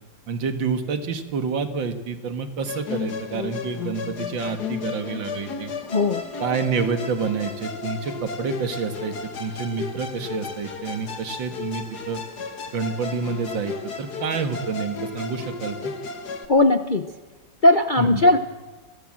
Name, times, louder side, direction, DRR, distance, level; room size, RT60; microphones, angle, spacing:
voice 1, 0.3-5.7 6.4-12.2 12.7-15.9 18.0-18.2, right 5 dB, 90° right, 8 dB, 2.4 m, -28 dB
Musical instrument, 2.6-16.5, left 5 dB, 60° left, 2.3 m, -34 dB
voice 2, 5.9-6.2 16.5-17.1 17.6-18.4, left 2 dB, 35° left, 8 dB, 0.8 m, -18 dB
29.5 x 21.0 x 7.6 m, 1.3 s
omnidirectional pair, 2.0 m